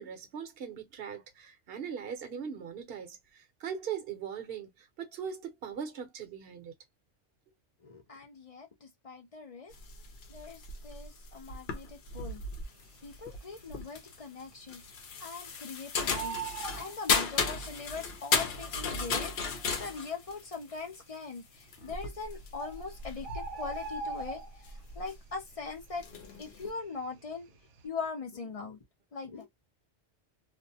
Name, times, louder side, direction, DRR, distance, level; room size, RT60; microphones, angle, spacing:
voice 1, 0.0-6.7, right 7 dB, 60° right, 0.9 m, -40 dB
voice 2, 7.8-9.7 10.3-12.4 13.0-14.8 15.2-16.4 16.8-24.4 24.9-26.1 26.4-27.5 27.8-28.8 29.1-29.5, left 4 dB, 45° left, 0.5 m, -41 dB
sound 1, 9.7-25.3 25.8-26.7, left 5 dB, 65° left, 0.9 m, -35 dB
Bird, 13.2-13.8 14.1-14.2 14.5-15.7 15.9-17.8 18.6-18.7 19.3-19.4 19.6-19.7 20.4-20.8 21.8-21.9 22.3-22.4 22.6-24.9 25.2-25.5 25.8-27.2 27.6-27.8, right 4 dB, 85° right, 1.0 m, -40 dB
2.5 x 2.0 x 2.7 m
omnidirectional pair, 1.2 m